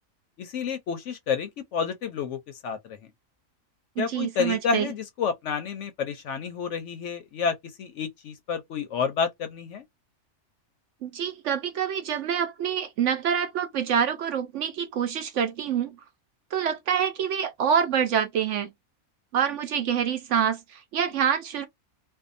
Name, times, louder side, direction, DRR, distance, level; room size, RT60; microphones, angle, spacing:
voice 1, 0.4-3.0 4.0-9.8, left 6 dB, 65° left, 0.8 m, -30 dB
voice 2, 4.0-4.9 11.0-16.0 16.5-18.7 19.3-21.7, right 8 dB, 65° right, 0.8 m, -26 dB
2.6 x 2.3 x 2.5 m
omnidirectional pair, 1.5 m